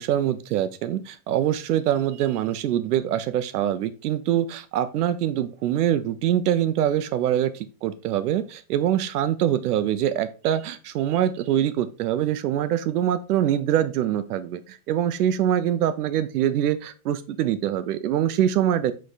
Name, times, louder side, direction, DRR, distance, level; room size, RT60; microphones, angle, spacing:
voice 1, 0.0-18.9, right 11 dB, 75° right, 12 dB, 0.8 m, -24 dB
7.6 x 3.4 x 4.0 m, 0.34 s
supercardioid pair, 175°, 46 cm